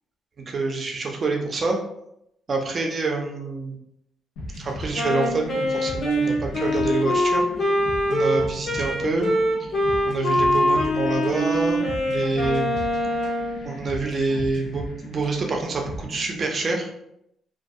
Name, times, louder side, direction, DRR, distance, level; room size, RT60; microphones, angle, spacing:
voice 1, 0.5-1.8 2.5-3.8 4.6-7.7 8.1-9.3 9.6-9.7 10.1-12.7 13.6-16.9, right 3 dB, 40° right, 2 dB, 0.5 m, -26 dB
sound 1, 4.4-16.4, left 1 dB, 90° left, 0.5 m, -38 dB
Wind instrument woodwind instrument, 4.9-13.6, equal, 70° left, 1.0 m, -23 dB
2.3 x 2.2 x 2.6 m, 0.78 s
cardioid pair, 90°, 0 cm